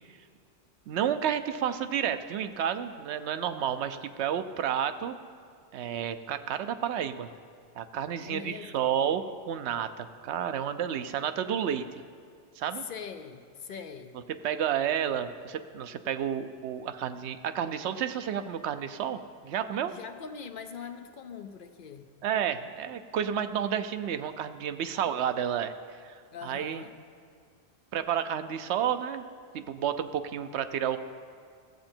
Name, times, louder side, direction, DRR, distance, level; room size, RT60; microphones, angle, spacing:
voice 1, 0.9-5.1 5.7-7.3 7.8-11.8 12.6-12.8 14.4-19.9 22.2-26.8 27.9-29.2 29.5-31.0, right 9 dB, 85° right, 10 dB, 0.9 m, -31 dB
voice 2, 8.2-9.0 12.7-14.2 19.9-22.1 26.3-26.9, left 6 dB, 60° left, 8 dB, 0.7 m, -42 dB
15.5 x 7.6 x 4.4 m, 2.2 s
omnidirectional pair, 1.1 m